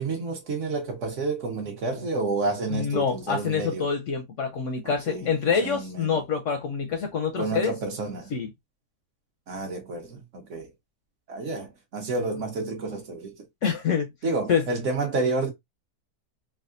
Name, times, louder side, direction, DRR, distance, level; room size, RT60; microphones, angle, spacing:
voice 1, 0.0-3.9 4.8-6.2 7.4-8.3 9.5-10.7 11.3-13.4 14.2-15.5, right 3 dB, 55° right, 1.0 m, -30 dB
voice 2, 2.7-7.7 8.3-8.5 13.6-14.1 14.5-14.6, left 6 dB, 65° left, 0.8 m, -26 dB
3.5 x 2.3 x 2.4 m
omnidirectional pair, 1.7 m